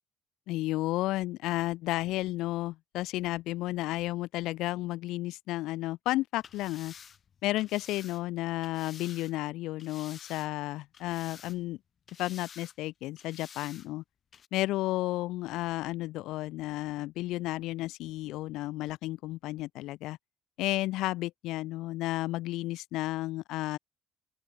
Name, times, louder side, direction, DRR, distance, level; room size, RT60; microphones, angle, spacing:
voice 1, 0.5-6.9 7.4-11.8 12.2-14.0 14.5-20.2 20.6-23.8, left 17 dB, 75° left, 1.5 m, -32 dB
sound 1, 6.3-9.3 9.8-10.7 10.9-11.8 12.1-12.8 13.2-13.9 14.3-14.5, left 7 dB, 35° left, 7.1 m, -51 dB
open air
cardioid pair, 140°, 0 cm